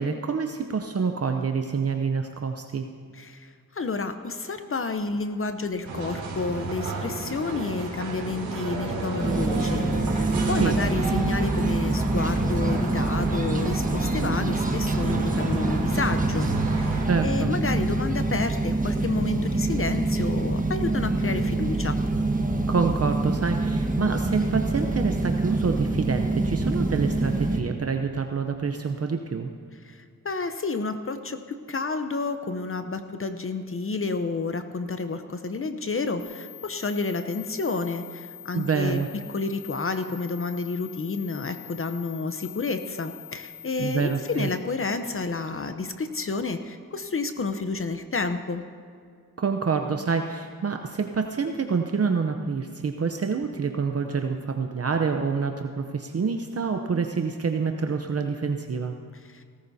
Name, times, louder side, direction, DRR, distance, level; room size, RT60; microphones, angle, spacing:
voice 1, 0.0-2.9 10.6-10.8 17.1-17.5 22.7-29.5 38.5-39.1 43.8-44.5 49.4-58.9, right 5 dB, 40° right, 5 dB, 0.7 m, -27 dB
voice 2, 3.1-16.5 16.8-22.0 29.8-39.0 39.3-48.6 59.3-59.4, left 4 dB, 35° left, 9 dB, 0.8 m, -30 dB
sound 1, 5.8-17.0, right 3 dB, 80° right, 3.1 m, -33 dB
sound 2, 9.2-27.6, right 2 dB, 20° right, 1.4 m, -25 dB
sound 3, 36.2-44.5, left 11 dB, 80° left, 3.3 m, -44 dB
18.0 x 14.0 x 2.8 m, 2.2 s
cardioid pair, 65°, 36 cm